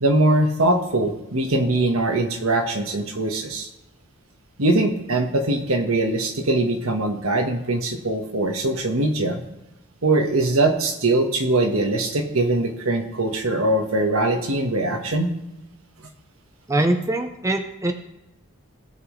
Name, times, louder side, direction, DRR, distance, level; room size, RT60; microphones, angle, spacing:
voice 1, 0.0-3.7 4.6-9.4 10.0-15.3, right 2 dB, 75° right, 4 dB, 1.5 m, -22 dB
voice 2, 16.7-17.9, right 1 dB, 15° right, 6 dB, 0.5 m, -22 dB
17.5 x 6.1 x 3.2 m, 0.93 s
head